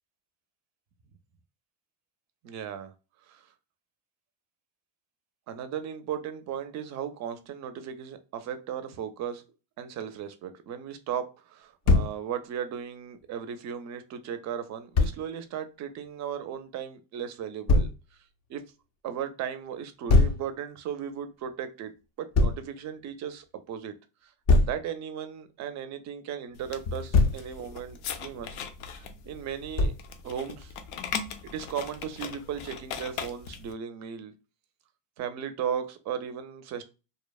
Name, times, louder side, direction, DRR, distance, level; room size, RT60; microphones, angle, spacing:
voice 1, 2.4-2.9 3.3-3.4 5.5-9.4 9.8-17.9 18.5-18.6 19.0-21.9 22.2-23.9 24.2-28.6 28.9-29.9 30.2-30.7 31.4-34.3 35.2-36.8, right 8 dB, 40° right, 0.4 m, -36 dB
Thump thud, 11.8-12.2 14.9-15.2 17.7-18.0 20.1-20.4 22.3-22.6 24.5-24.8 26.8-27.4 29.8-30.1, left 3 dB, 45° left, 0.4 m, -21 dB
sound 1, 26.5-33.7, left 7 dB, 85° left, 0.6 m, -39 dB
2.8 x 2.0 x 2.2 m
cardioid pair, 140°, 42 cm